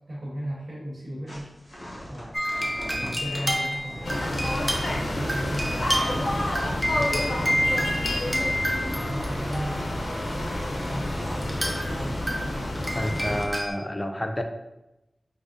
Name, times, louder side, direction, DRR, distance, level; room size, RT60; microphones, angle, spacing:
voice 1, 0.1-1.5 2.1-4.2 4.8-8.5 8.9-12.6, equal, 70° right, -7 dB, 1.1 m, -36 dB
sound 1, 1.3-8.7 9.1-9.8 10.2-10.5, equal, 50° left, 1.1 m, -41 dB
sound 2, 2.3-10.1 11.4-11.9 12.3-13.7, equal, 10° right, 0.6 m, -29 dB
sound 3, 4.0-13.5, left 1 dB, 85° left, 0.5 m, -29 dB
voice 2, 12.9-14.4, equal, 25° left, 5 dB, 0.4 m, -29 dB
4.7 x 2.1 x 2.5 m, 0.95 s
cardioid pair, 45°, 0 cm